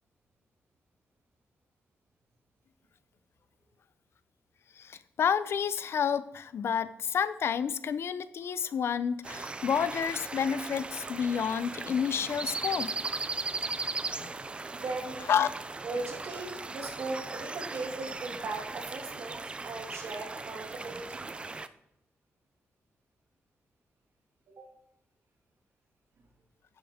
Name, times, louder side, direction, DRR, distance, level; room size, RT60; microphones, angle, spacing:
voice 1, 4.8-12.9 14.2-14.3 15.3-15.5, left 7 dB, 65° left, 15 dB, 0.5 m, -30 dB
sound 1, 9.2-21.7, right 3 dB, 25° right, 0.4 m, -38 dB
voice 2, 14.7-15.3 15.8-21.3 24.6-24.7, right 3 dB, 75° right, 1 dB, 2.2 m, -38 dB
10.0 x 6.9 x 3.7 m, 0.81 s
wide cardioid pair, 135°, 5 cm